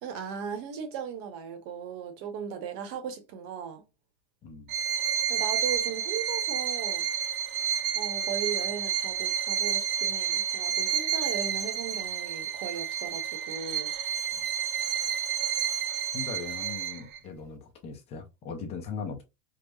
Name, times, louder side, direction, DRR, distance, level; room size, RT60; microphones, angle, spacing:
voice 1, 0.0-3.8 5.3-7.1 7.9-13.9, right 7 dB, 40° right, 0.9 m, -37 dB
Bowed string instrument, 4.7-17.2, right 9 dB, 80° right, 0.8 m, -30 dB
voice 2, 16.1-19.2, left 5 dB, 15° left, 0.3 m, -39 dB
4.7 x 2.0 x 2.2 m
supercardioid pair, 150°, 43 cm